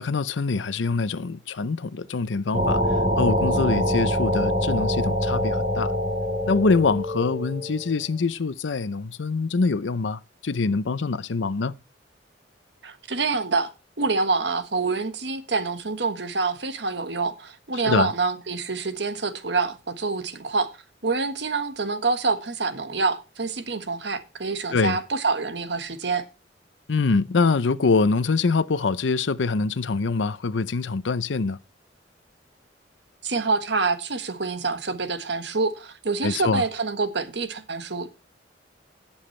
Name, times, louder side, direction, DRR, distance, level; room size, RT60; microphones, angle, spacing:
voice 1, 0.0-2.8 3.2-5.9 6.5-11.7 17.8-18.1 24.7-25.0 26.9-31.6 36.2-36.6, left 4 dB, 85° left, 0.6 m, -24 dB
sound 1, 2.5-8.0, equal, 35° right, 4.6 m, -24 dB
voice 2, 12.8-13.7 14.0-20.7 21.0-26.2 33.2-38.1, right 4 dB, 65° right, 1.4 m, -26 dB
20.0 x 7.2 x 3.2 m
head